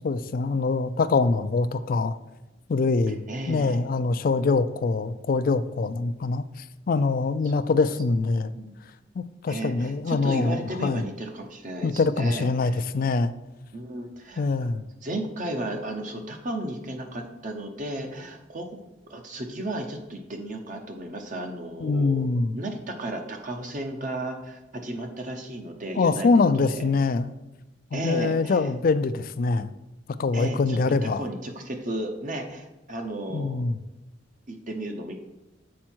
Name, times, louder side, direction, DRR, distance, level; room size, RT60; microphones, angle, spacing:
voice 1, 0.0-2.2 2.7-6.4 6.9-8.5 9.2-11.0 11.8-13.3 14.4-14.8 21.8-22.5 26.0-27.3 27.9-29.7 30.2-31.2 33.3-33.8, left 3 dB, 50° left, 0.4 m, -24 dB
voice 2, 3.3-3.9 8.4-8.7 9.5-12.8 13.7-14.7 15.0-18.8 19.1-26.3 26.7-26.9 27.9-28.7 30.3-33.6 34.5-35.1, right 1 dB, 45° right, 0.8 m, -34 dB
7.5 x 4.6 x 4.4 m
head